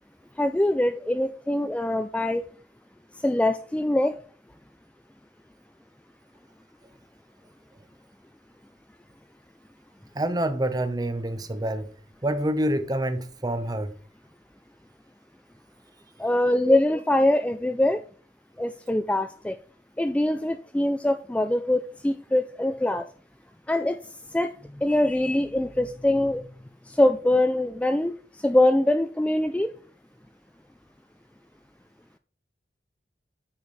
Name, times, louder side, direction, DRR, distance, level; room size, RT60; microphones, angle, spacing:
voice 1, 0.4-2.4 3.2-4.2 16.2-18.0 18.6-19.6 20.0-23.1 23.7-24.0 24.3-24.5 24.8-26.4 26.9-28.1 28.4-29.7, left 1 dB, 5° left, 0.3 m, -23 dB
voice 2, 10.1-11.9 12.2-13.9 16.6-16.8, right 1 dB, 20° right, 0.7 m, -27 dB
8.6 x 4.7 x 4.1 m
head